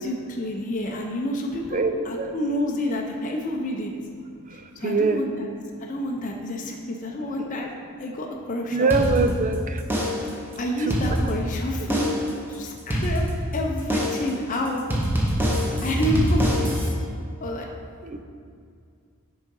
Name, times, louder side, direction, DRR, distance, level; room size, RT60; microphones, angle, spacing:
voice 1, 0.0-3.9 4.8-5.5 5.8-7.7 8.0-9.3 10.6-12.2 12.5-13.2 13.5-14.8 15.6-16.7 17.4-17.7, left 1 dB, 35° left, 0 dB, 0.6 m, -29 dB
voice 2, 1.7-2.3 4.8-5.2 8.7-9.8 10.8-11.0 11.2-11.3 18.0-18.2, right 3 dB, 35° right, 7 dB, 0.4 m, -24 dB
sound 1, 8.9-9.5 9.9-10.4 10.8-11.5 11.9-12.4 12.9-13.5 13.9-14.4 14.9-16.9, equal, 10° right, 0.9 m, -24 dB
6.3 x 4.8 x 5.4 m, 2.3 s
head